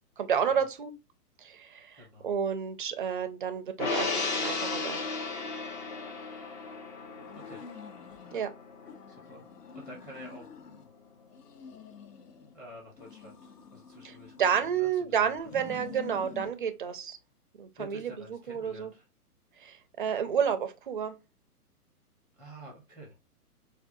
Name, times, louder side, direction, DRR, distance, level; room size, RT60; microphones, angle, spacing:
voice 1, 0.2-0.9 1.4-5.0 8.3-8.5 14.0-17.2 17.6-18.9 19.6-21.2, right 7 dB, 35° right, 0.4 m, -31 dB
voice 2, 1.9-2.3 7.3-7.6 9.1-9.5 9.7-10.5 12.5-14.3 14.6-15.9 17.8-19.0 22.4-23.1, equal, 15° left, 0.9 m, -49 dB
Gong, 3.8-10.4 10.7-10.9, left 3 dB, 30° left, 0.5 m, -35 dB
sound 1, 7.2-8.4 8.8-10.9 11.3-12.5 13.0-14.9 15.4-16.6, left 7 dB, 80° left, 0.7 m, -48 dB
4.5 x 2.3 x 2.5 m
hypercardioid pair, 130°, 47 cm